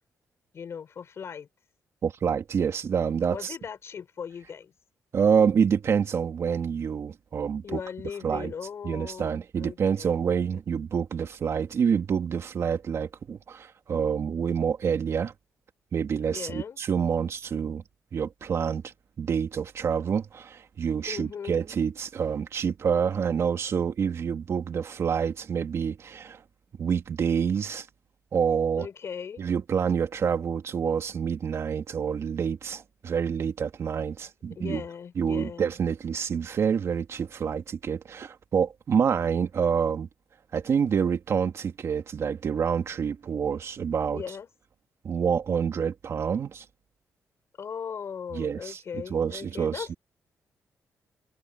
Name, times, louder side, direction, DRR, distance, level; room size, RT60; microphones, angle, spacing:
voice 1, 0.5-1.5 3.3-4.7 7.6-10.1 16.3-16.8 21.0-21.6 28.8-29.4 34.6-35.8 44.1-44.5 47.6-50.0, left 7 dB, 55° left, 4.1 m, -38 dB
voice 2, 2.0-3.6 5.1-7.8 8.2-8.5 8.8-15.3 15.9-17.8 18.1-26.4 26.8-27.9 28.3-28.9 29.4-34.8 35.2-40.1 40.5-44.2 45.0-46.6 48.3-49.9, right 7 dB, 55° right, 2.6 m, -27 dB
cardioid pair, 110°, 6 cm